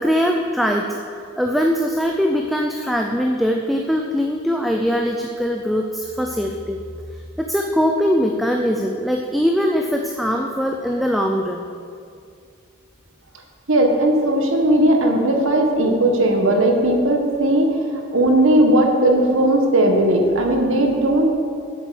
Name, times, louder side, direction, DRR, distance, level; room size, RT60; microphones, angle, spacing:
voice 1, 0.0-6.8 7.4-11.7, equal, ahead, 2 dB, 0.5 m, -21 dB
voice 2, 13.7-17.7 18.1-21.3, right 1 dB, 65° right, 2 dB, 1.6 m, -17 dB
9.2 x 7.8 x 7.7 m, 2.3 s
head